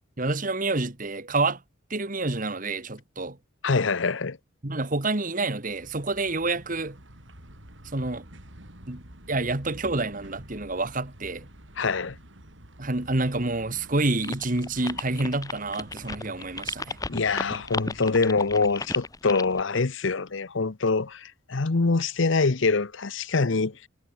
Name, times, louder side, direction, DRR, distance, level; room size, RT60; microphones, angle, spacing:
voice 1, 0.2-1.6 1.9-3.4 4.6-7.0 7.9-8.3 8.9-11.5 12.8-17.0, right 2 dB, 40° right, 1.8 m, -28 dB
voice 2, 3.6-4.4 11.8-12.2 17.1-23.7, left 4 dB, 65° left, 0.9 m, -25 dB
sound 1, 5.6-18.2, right 1 dB, 65° right, 5.3 m, -49 dB
sound 2, 14.2-19.6, left 3 dB, 15° left, 0.9 m, -33 dB
head